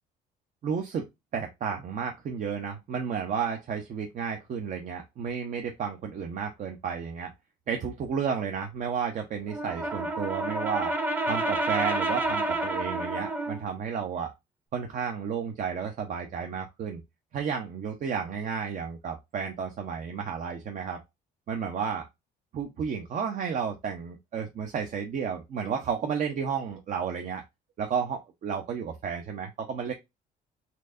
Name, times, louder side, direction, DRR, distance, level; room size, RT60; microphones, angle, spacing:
voice 1, 0.6-1.1 1.3-7.3 7.7-10.9 11.3-14.3 14.7-17.0 17.3-21.0 21.5-22.1 22.5-27.4 27.8-29.9, right 6 dB, 50° right, 0.8 m, -32 dB
Brass instrument, 9.5-13.7, right 2 dB, 10° right, 0.7 m, -29 dB
4.4 x 2.7 x 2.5 m
cardioid pair, 110°, 17 cm